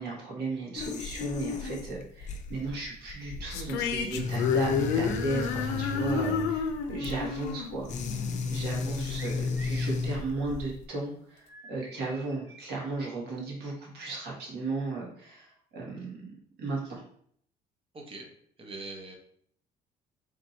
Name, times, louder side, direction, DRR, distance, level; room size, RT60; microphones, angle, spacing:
voice 1, 0.0-7.9 8.5-16.2 16.6-17.0, right 3 dB, 75° right, -3 dB, 1.7 m, -35 dB
sound 1, 0.8-10.8, left 4 dB, 45° left, 0.6 m, -35 dB
sound 2, 3.5-8.9, left 6 dB, 90° left, 0.6 m, -30 dB
sound 3, 9.2-9.9 11.5-12.9, right 2 dB, 15° right, 0.7 m, -49 dB
voice 2, 17.9-18.3 18.6-19.1, right 3 dB, 35° right, 2 dB, 1.0 m, -42 dB
3.5 x 2.7 x 4.2 m, 0.62 s
cardioid pair, 110°, 17 cm